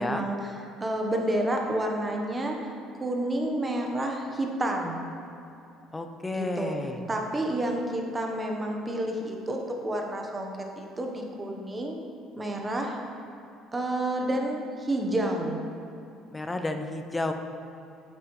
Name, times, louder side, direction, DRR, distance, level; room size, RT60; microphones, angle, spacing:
voice 1, 0.0-2.7 3.0-5.0 6.3-6.8 7.1-12.0 12.3-13.0 13.7-15.6, right 1 dB, 20° right, 2 dB, 1.0 m, -30 dB
voice 2, 5.9-7.0 16.3-17.3, left 2 dB, 15° left, 6 dB, 0.6 m, -31 dB
8.8 x 7.9 x 3.2 m, 2.8 s
cardioid pair, 125°, 0 cm